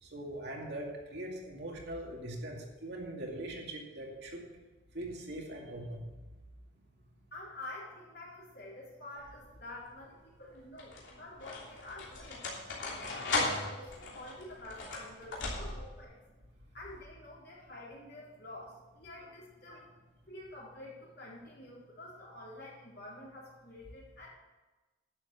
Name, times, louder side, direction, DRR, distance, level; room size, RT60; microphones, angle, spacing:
voice 1, 0.0-4.4 4.9-6.0 13.1-13.3 19.7-19.8, right 1 dB, 55° right, -1 dB, 2.3 m, -41 dB
voice 2, 7.3-16.2 16.7-19.9 20.3-24.3, left 1 dB, 55° left, -5 dB, 3.9 m, -48 dB
sound 1, 9.2-9.7 10.6-16.1, left 3 dB, 70° left, 3.1 m, -37 dB
11.0 x 7.2 x 6.9 m, 1.2 s
head